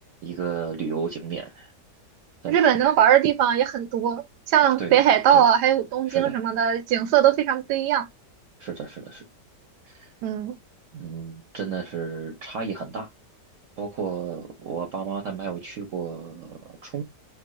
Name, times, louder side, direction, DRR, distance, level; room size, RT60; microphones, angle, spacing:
voice 1, 0.2-1.7 2.4-2.7 4.8-5.0 5.3-5.4 6.1-6.4 8.6-9.2 9.8-10.1 10.9-13.1 13.8-17.0, right 6 dB, 60° right, 0.9 m, -33 dB
voice 2, 2.5-8.1 10.2-10.6, right 10 dB, 75° right, 1.1 m, -20 dB
4.7 x 2.0 x 2.2 m
omnidirectional pair, 1.8 m